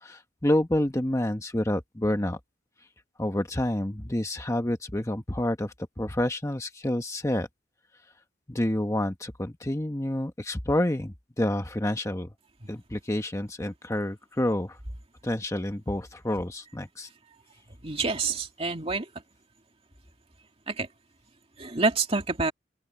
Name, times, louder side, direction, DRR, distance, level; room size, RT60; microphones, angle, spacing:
voice 1, 0.0-2.4 3.2-7.5 8.5-12.3 12.7-14.8 15.2-17.1, left 1 dB, 15° left, 1.0 m, -28 dB
voice 2, 17.8-19.0 20.7-20.9 21.6-22.5, right 3 dB, 30° right, 2.5 m, -27 dB
open air
head